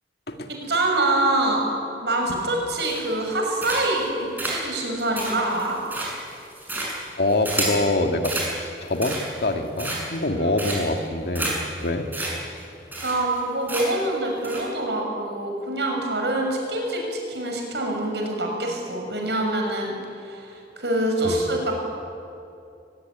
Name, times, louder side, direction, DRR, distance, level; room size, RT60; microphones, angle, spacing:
voice 1, 0.5-1.7 2.0-4.0 4.4-5.8 10.4-10.5 13.0-19.9 20.2-21.7, right 1 dB, 75° right, 2 dB, 6.6 m, -25 dB
sound 1, 2.8-3.3 3.6-4.0 4.4-7.8 8.2-8.5 8.9-9.4 9.8-10.2 10.6-11.0 11.3-11.5 11.8-11.9 12.1-12.3 12.6-12.7 12.9-13.4 13.7-14.1 14.4-14.6, right 2 dB, 10° right, 6.7 m, -30 dB
voice 2, 7.2-12.1 21.2-21.4, left 2 dB, 60° left, 5 dB, 2.1 m, -25 dB
23.5 x 20.5 x 9.6 m, 2.6 s
head